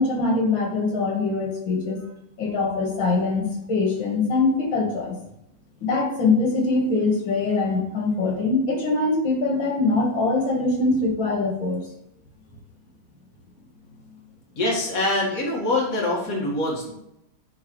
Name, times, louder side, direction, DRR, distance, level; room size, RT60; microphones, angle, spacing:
voice 1, 0.0-2.0 2.4-5.1 5.8-11.8, left 3 dB, 70° left, 0 dB, 2.3 m, -23 dB
voice 2, 14.6-16.9, left 2 dB, 45° left, -4 dB, 2.1 m, -24 dB
9.8 x 3.8 x 3.1 m, 0.80 s
omnidirectional pair, 2.2 m